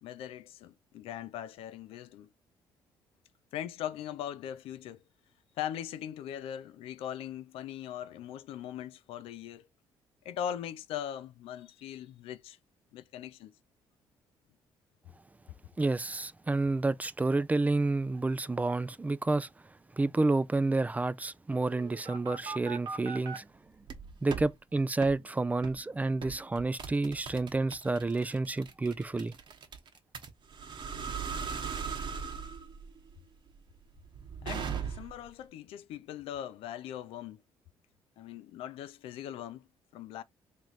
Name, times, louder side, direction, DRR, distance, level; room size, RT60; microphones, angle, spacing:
voice 1, 0.0-2.3 3.5-5.0 5.6-9.7 10.2-12.6 12.9-13.5 34.4-37.4 38.2-39.7 39.9-40.2, left 10 dB, 80° left, 0.5 m, -40 dB
voice 2, 15.8-19.5 20.0-23.5 24.2-29.3, right 3 dB, 15° right, 0.3 m, -29 dB
sound 1, 21.6-23.4 23.9-24.5 25.0-25.2 25.6-25.8 26.2-35.3, right 6 dB, 55° right, 1.1 m, -39 dB
3.1 x 3.0 x 3.9 m
supercardioid pair, 75°, 10 cm